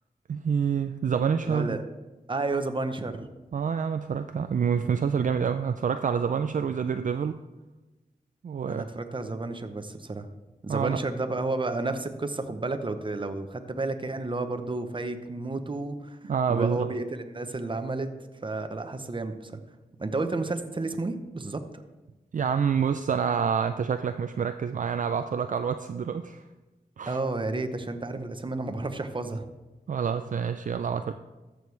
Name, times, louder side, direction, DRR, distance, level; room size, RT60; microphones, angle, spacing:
voice 1, 0.3-1.8 3.5-7.4 8.4-8.8 10.7-11.0 16.3-16.9 22.3-26.4 27.0-27.2 29.9-31.1, right 7 dB, 55° right, 8 dB, 0.4 m, -27 dB
voice 2, 1.4-1.8 2.3-3.3 8.6-10.3 10.6-16.2 16.5-18.1 18.4-19.6 20.0-21.6 27.1-29.4, right 3 dB, 30° right, 8 dB, 0.8 m, -31 dB
14.0 x 6.3 x 3.2 m, 1.1 s
wide cardioid pair, 75°, 16 cm